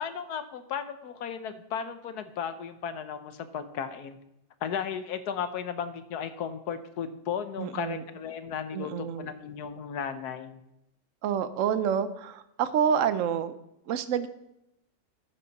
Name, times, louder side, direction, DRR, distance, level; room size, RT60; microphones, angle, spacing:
voice 1, 0.0-4.2 4.6-10.6, left 7 dB, 65° left, 10 dB, 1.2 m, -35 dB
voice 2, 7.6-8.0 8.7-9.3 11.2-13.5 13.9-14.3, right 8 dB, 65° right, 12 dB, 0.8 m, -28 dB
12.5 x 7.3 x 4.0 m, 0.86 s
omnidirectional pair, 2.0 m